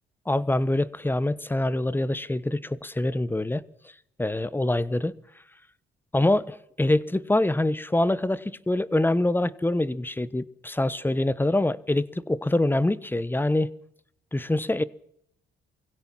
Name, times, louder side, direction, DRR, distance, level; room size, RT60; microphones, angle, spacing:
voice 1, 0.3-3.6 4.2-5.2 6.1-13.7 14.3-14.8, left 1 dB, 10° left, 1.2 m, -25 dB
24.0 x 16.5 x 7.4 m
cardioid pair, 90°, 20 cm